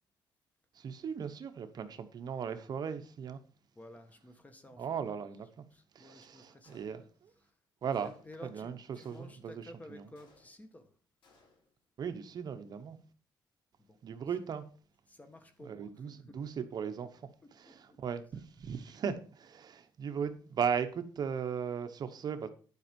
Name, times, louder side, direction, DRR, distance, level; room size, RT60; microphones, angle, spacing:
voice 1, 0.7-3.4 4.8-5.6 5.9-7.3 7.8-8.1 8.4-10.1 12.0-13.0 14.0-14.6 15.6-22.5, right 7 dB, 55° right, 0.9 m, -37 dB
voice 2, 3.7-5.0 5.4-6.8 7.4-7.5 8.0-10.9 13.9-14.0 14.3-14.4 15.1-16.3 17.7-18.4 18.9-19.1, left 1 dB, 20° left, 1.5 m, -53 dB
Gunshot gunfire, 6.6-7.3 7.9-8.5 9.0-9.6 10.1-10.8 11.2-11.8, left 3 dB, 85° left, 4.5 m, -66 dB
11.0 x 5.2 x 5.2 m
cardioid pair, 130°, 8 cm